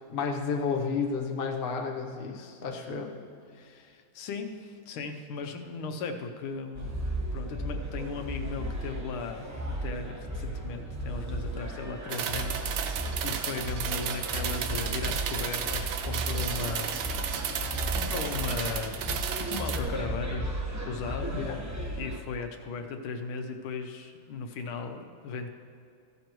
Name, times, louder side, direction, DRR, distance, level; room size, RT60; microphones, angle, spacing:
voice 1, 0.1-3.2 21.3-21.6, left 5 dB, 45° left, 2 dB, 0.7 m, -31 dB
voice 2, 3.5-7.0 7.3-9.5 9.8-12.7 13.2-17.0 17.3-17.4 17.9-20.5 20.9-21.4 22.0-25.5, left 4 dB, 85° left, 5 dB, 1.7 m, -37 dB
sound 1, 6.7-22.2, right 1 dB, 15° right, 0.7 m, -35 dB
sound 2, 12.1-19.8, right 8 dB, 70° right, 1.4 m, -33 dB
15.0 x 12.0 x 3.1 m, 2.4 s
omnidirectional pair, 2.3 m